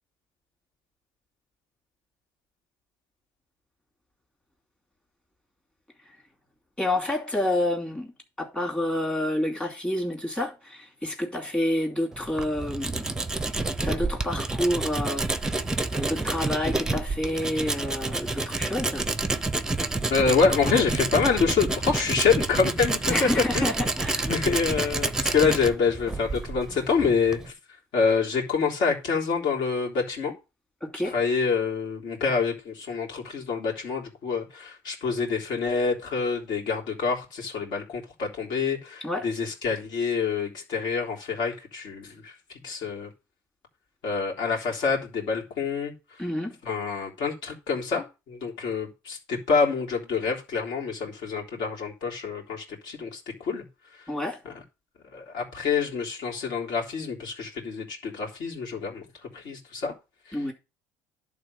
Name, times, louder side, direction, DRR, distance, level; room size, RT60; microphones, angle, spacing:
voice 1, 6.8-8.1 8.4-13.2 13.8-15.3 15.9-19.0 23.1-24.3 30.8-31.2 39.0-39.3 46.2-46.6 54.1-54.4 60.3-60.5, left 1 dB, 10° left, 2.7 m, -28 dB
Tools, 12.1-27.5, right 2 dB, 5° right, 0.7 m, -29 dB
voice 2, 20.1-23.3 23.5-23.7 24.2-27.5 27.9-30.3 31.1-42.3 42.6-43.1 44.0-45.9 46.6-53.6 54.4-54.5 55.1-59.9 60.3-60.4, left 5 dB, 60° left, 3.4 m, -26 dB
11.0 x 3.8 x 6.6 m
cardioid pair, 130°, 8 cm